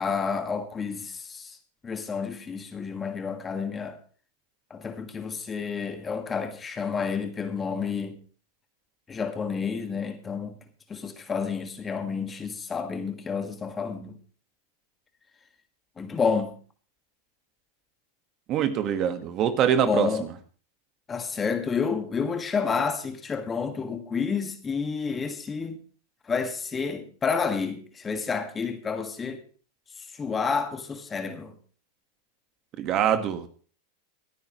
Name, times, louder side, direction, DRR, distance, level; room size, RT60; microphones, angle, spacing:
voice 1, 0.0-1.6 1.8-4.0 4.7-8.2 9.1-10.6 10.9-14.2 16.0-16.6 19.9-20.3 21.1-25.8 26.3-29.4 30.1-31.5, left 5 dB, 20° left, 1.8 m, -30 dB
voice 2, 18.5-20.3 32.8-33.5, right 9 dB, 40° right, 1.5 m, -24 dB
26.0 x 9.2 x 3.1 m
hypercardioid pair, 110°, 0 cm